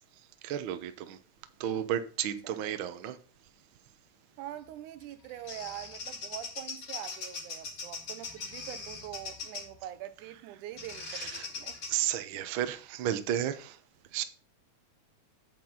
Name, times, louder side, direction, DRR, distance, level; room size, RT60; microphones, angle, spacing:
voice 1, 0.4-1.2 1.6-3.2 11.0-11.5 11.9-13.8 14.1-14.2, right 11 dB, 70° right, 1.2 m, -33 dB
voice 2, 2.4-2.8 4.4-11.8, right 12 dB, 85° right, 2.3 m, -44 dB
Bird vocalization bird call bird song, 5.0-9.8 10.8-11.9, left 4 dB, 50° left, 3.1 m, -41 dB
9.1 x 7.8 x 4.0 m
omnidirectional pair, 3.5 m